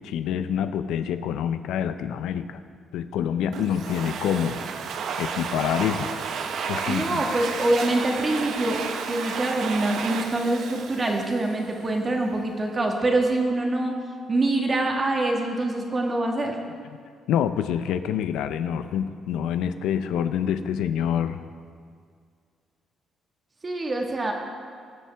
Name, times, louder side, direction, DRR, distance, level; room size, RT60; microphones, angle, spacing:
voice 1, 0.0-2.6 2.9-4.6 5.2-6.1 6.7-7.2 17.3-21.4, left 9 dB, 90° left, 10 dB, 0.5 m, -26 dB
Domestic sounds home sounds, 3.5-12.0, right 6 dB, 65° right, 0.7 m, -32 dB
voice 2, 6.9-8.8 9.1-14.0 14.3-16.6 23.6-24.3, right 2 dB, 25° right, 1 dB, 1.5 m, -25 dB
19.0 x 7.6 x 3.4 m, 2.1 s
cardioid pair, 125°, 0 cm